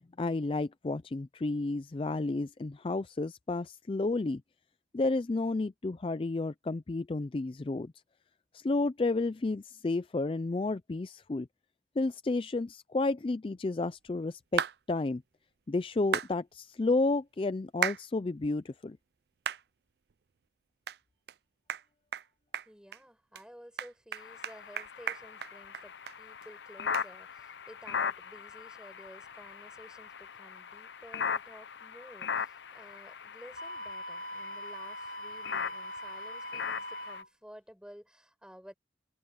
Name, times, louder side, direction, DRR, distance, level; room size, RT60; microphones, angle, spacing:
voice 1, 0.2-4.4 4.9-7.9 8.5-11.5 12.0-15.2 15.7-19.0, left 3 dB, 30° left, 0.4 m, -31 dB
sound 1, 14.6-14.8 16.1-16.3 17.8-18.0 18.5-18.6 19.4-19.6 20.1-20.2 20.9-21.0 21.3-21.4 21.7-21.8 22.1-22.3 22.5-23.0 23.3-23.4 23.8-26.2 26.4-26.5 26.9-27.1, right 8 dB, 65° right, 0.4 m, -34 dB
voice 2, 22.7-38.7, equal, 5° right, 5.4 m, -53 dB
sound 2, 24.2-37.2, left 6 dB, 85° left, 0.7 m, -39 dB
Wind instrument woodwind instrument, 33.5-37.3, equal, 50° left, 3.7 m, -42 dB
head